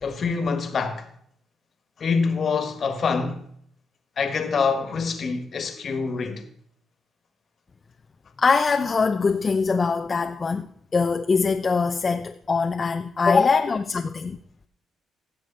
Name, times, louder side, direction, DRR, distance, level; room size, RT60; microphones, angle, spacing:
voice 1, 0.0-1.1 2.0-3.5 4.2-6.4, left 5 dB, 50° left, 1.6 m, -25 dB
voice 2, 8.4-10.7 10.9-14.4, left 4 dB, 35° left, 0.6 m, -22 dB
16.5 x 6.9 x 4.1 m
cardioid pair, 90°, 0 cm